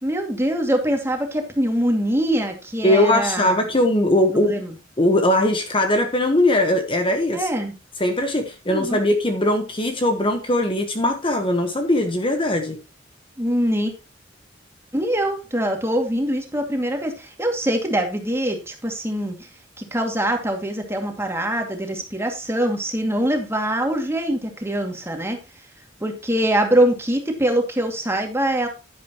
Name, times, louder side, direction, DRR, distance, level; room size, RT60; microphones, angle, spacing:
voice 1, 0.0-3.5 4.4-4.7 7.3-7.7 8.7-9.0 13.4-13.9 14.9-19.5 19.8-25.4 26.0-28.7, right 1 dB, 15° right, 3 dB, 2.3 m, -23 dB
voice 2, 2.8-4.6 5.0-7.5 8.0-12.8, left 1 dB, 25° left, 6 dB, 1.2 m, -20 dB
11.0 x 10.5 x 3.0 m, 0.28 s
head